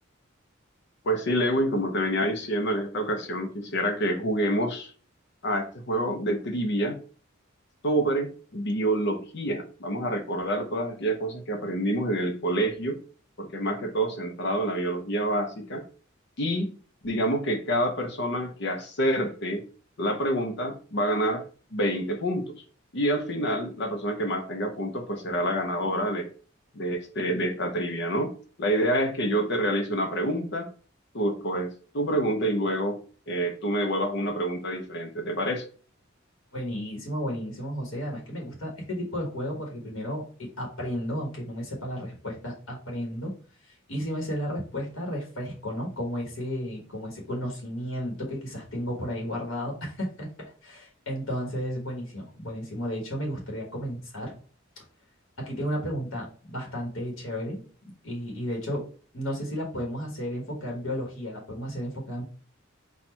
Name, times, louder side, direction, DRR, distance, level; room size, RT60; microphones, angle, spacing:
voice 1, 1.0-4.9 5.4-7.0 7.8-13.0 13.4-15.8 16.4-16.7 17.0-19.6 20.0-21.4 21.7-22.6 22.9-26.3 26.7-30.7 31.1-33.0 33.3-35.6, right 1 dB, 60° left, 0.7 m, -27 dB
voice 2, 36.5-40.2 40.6-43.3 43.9-50.3 50.6-54.3 55.4-57.6 58.0-58.8 59.1-62.2, equal, 90° left, 1.5 m, -33 dB
4.3 x 2.4 x 4.3 m
head